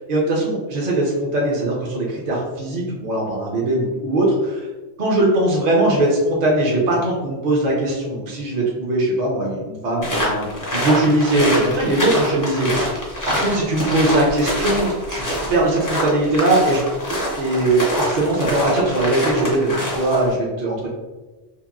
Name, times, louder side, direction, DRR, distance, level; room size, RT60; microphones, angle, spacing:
voice 1, 0.0-4.7 5.0-12.9 13.3-15.2 15.5-16.8 17.4-20.9, right 1 dB, 50° right, -3 dB, 0.6 m, -20 dB
sound 1, 10.0-20.3, equal, 25° left, 0.4 m, -25 dB
2.8 x 2.6 x 2.4 m, 1.2 s
omnidirectional pair, 1.2 m